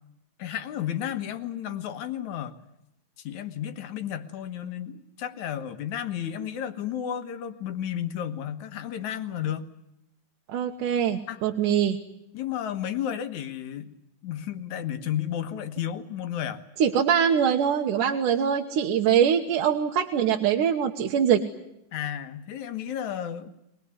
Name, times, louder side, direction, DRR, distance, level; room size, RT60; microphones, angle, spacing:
voice 1, 0.4-2.5 3.2-9.7 11.3-11.4 11.7-11.8 12.3-13.9 14.2-16.6 21.9-23.5, left 10 dB, 65° left, 8 dB, 2.6 m, -32 dB
voice 2, 10.5-12.0 16.8-21.4, right 8 dB, 75° right, 2 dB, 2.7 m, -23 dB
23.5 x 20.0 x 9.7 m, 0.84 s
omnidirectional pair, 3.8 m